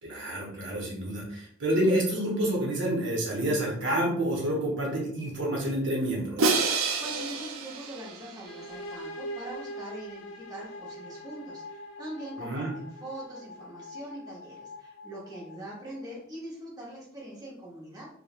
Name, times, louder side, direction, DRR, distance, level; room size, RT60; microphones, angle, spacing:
voice 1, 0.0-6.6 12.4-12.7, right 1 dB, 65° right, -2 dB, 0.8 m, -28 dB
Crash cymbal, 6.4-8.6, right 4 dB, 85° right, 0.4 m, -28 dB
voice 2, 6.7-18.1, right 1 dB, 20° right, -5 dB, 0.8 m, -42 dB
sound 1, 8.5-16.1, equal, 65° left, 0.4 m, -43 dB
3.1 x 2.1 x 2.4 m, 0.64 s
head